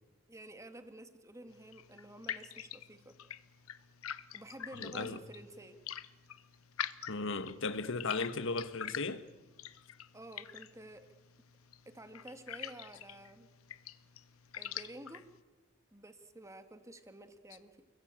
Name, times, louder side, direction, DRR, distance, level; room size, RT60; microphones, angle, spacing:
voice 1, 0.3-3.2 4.3-5.8 10.1-11.1 11.9-13.5 14.6-15.3 15.9-17.8, right 1 dB, 15° right, 1.9 m, -51 dB
sound 1, 1.5-15.4, left 9 dB, 90° left, 1.1 m, -46 dB
voice 2, 4.8-5.2 7.1-9.2, left 3 dB, 65° left, 1.5 m, -36 dB
29.5 x 21.0 x 9.0 m
head